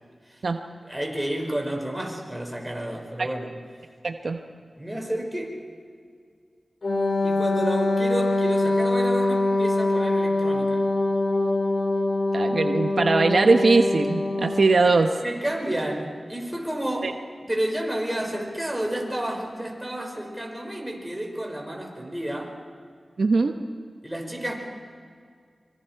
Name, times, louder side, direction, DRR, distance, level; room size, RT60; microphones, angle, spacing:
voice 1, 0.8-3.5 4.8-5.6 7.2-10.8 15.2-17.2 17.5-22.5 24.0-24.5, right 1 dB, 10° right, 0 dB, 5.4 m, -30 dB
voice 2, 4.0-4.4 12.3-15.1 17.0-17.1 23.2-23.5, right 3 dB, 75° right, 5 dB, 1.0 m, -20 dB
Wind instrument woodwind instrument, 6.8-14.9, left 2 dB, 70° left, 4.6 m, -24 dB
25.0 x 24.5 x 4.6 m, 2.1 s
wide cardioid pair, 55°, 0 cm